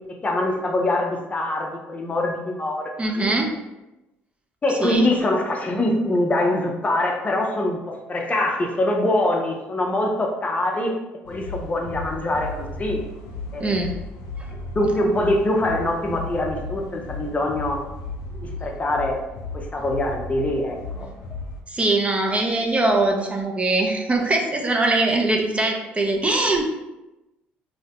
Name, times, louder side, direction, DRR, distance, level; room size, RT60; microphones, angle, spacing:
voice 1, 0.2-3.3 4.6-10.9 11.3-13.0 13.5-13.8 14.8-17.8 18.4-19.2 19.5-21.1, left 1 dB, 30° left, 1 dB, 0.5 m, -24 dB
voice 2, 3.0-3.5 4.8-5.1 13.6-13.9 14.4-14.5 18.3-18.5 21.7-26.6, right 2 dB, 25° right, 2 dB, 0.5 m, -22 dB
sound 1, 11.2-21.6, left 3 dB, 80° left, 0.4 m, -35 dB
2.7 x 2.0 x 2.8 m, 0.99 s
hypercardioid pair, 65°, 5 cm